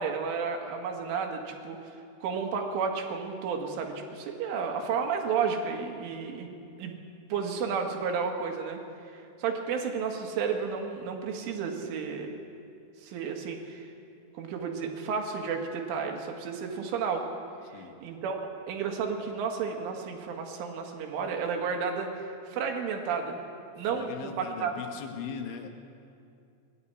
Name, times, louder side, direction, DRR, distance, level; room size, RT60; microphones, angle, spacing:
voice 1, 0.0-6.5 6.8-6.9 7.3-8.8 9.1-12.4 13.0-13.9 14.4-17.3 17.7-23.4 23.8-24.7, right 6 dB, 80° right, 2 dB, 4.3 m, -32 dB
voice 2, 23.9-25.7, left 7 dB, 75° left, 4 dB, 3.7 m, -39 dB
21.0 x 13.0 x 9.9 m, 2.5 s
omnidirectional pair, 5.6 m